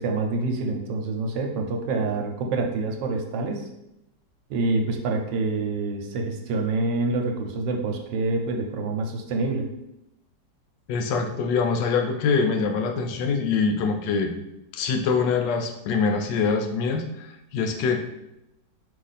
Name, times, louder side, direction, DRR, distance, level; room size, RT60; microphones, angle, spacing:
voice 1, 0.0-3.6 4.5-9.6, right 3 dB, 90° right, 3 dB, 1.3 m, -26 dB
voice 2, 10.9-14.3 14.7-18.0, left 5 dB, 85° left, 4 dB, 1.3 m, -24 dB
5.0 x 2.5 x 4.0 m, 0.86 s
omnidirectional pair, 1.9 m